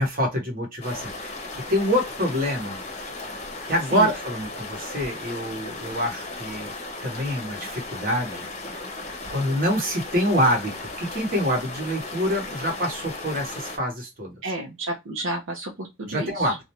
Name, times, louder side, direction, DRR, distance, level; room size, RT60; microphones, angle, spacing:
voice 1, 0.0-1.3 1.7-2.8 3.6-6.7 7.0-8.5 9.3-10.7 11.0-14.3 16.1-16.6, equal, 45° right, 1 dB, 1.1 m, -26 dB
sound 1, 0.8-13.8, left 2 dB, 35° left, 0.7 m, -36 dB
voice 2, 14.4-16.6, right 2 dB, 65° right, -1 dB, 0.6 m, -31 dB
2.5 x 2.1 x 2.8 m, 0.21 s
head